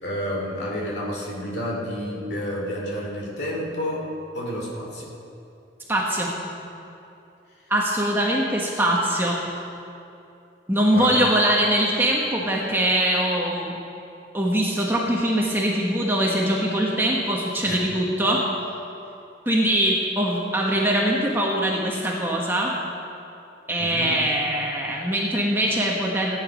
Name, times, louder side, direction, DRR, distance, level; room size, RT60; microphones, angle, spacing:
voice 1, 0.0-5.1 10.9-11.4 17.6-17.8 23.8-24.2, equal, 65° left, -2 dB, 2.6 m, -30 dB
voice 2, 5.9-6.3 7.7-9.4 10.7-13.7 14.3-18.4 19.5-22.8 23.7-26.4, right 1 dB, 10° right, -3 dB, 1.1 m, -22 dB
15.5 x 9.3 x 5.1 m, 2.8 s
head